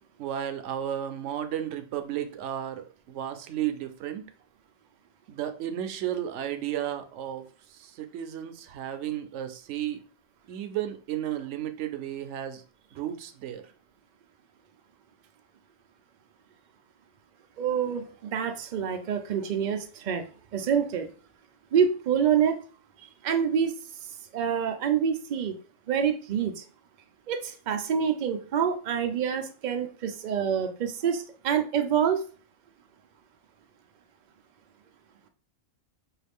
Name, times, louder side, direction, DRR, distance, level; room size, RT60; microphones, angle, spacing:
voice 1, 0.2-4.2 5.3-7.4 7.8-10.0 10.5-12.6 12.9-13.6, right 11 dB, 70° right, 8 dB, 0.8 m, -33 dB
voice 2, 17.6-20.2 20.5-21.1 21.7-22.6 23.2-23.7 24.3-25.5 25.9-26.6 27.3-32.2, right 8 dB, 85° right, 6 dB, 0.4 m, -26 dB
4.6 x 2.4 x 3.4 m, 0.39 s
omnidirectional pair, 1.4 m